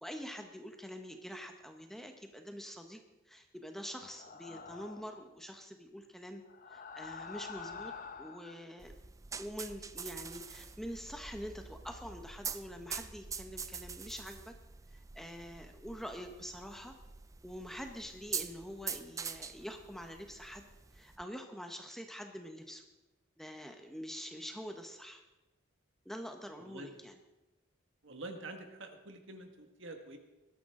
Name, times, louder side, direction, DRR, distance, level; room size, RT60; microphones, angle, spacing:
voice 1, 0.0-6.4 6.7-8.9 9.4-14.5 14.9-16.9 17.4-20.7 20.9-22.8 23.4-25.2 26.0-27.2, equal, ahead, 4 dB, 0.9 m, -45 dB
sound 1, 4.0-5.2 6.5-8.6, left 5 dB, 40° left, 1.0 m, -47 dB
sound 2, 8.8-21.2, right 6 dB, 15° right, 0.4 m, -45 dB
voice 2, 26.6-26.9 28.0-30.2, right 2 dB, 65° right, 5 dB, 1.7 m, -47 dB
20.0 x 13.0 x 3.8 m, 1.0 s
head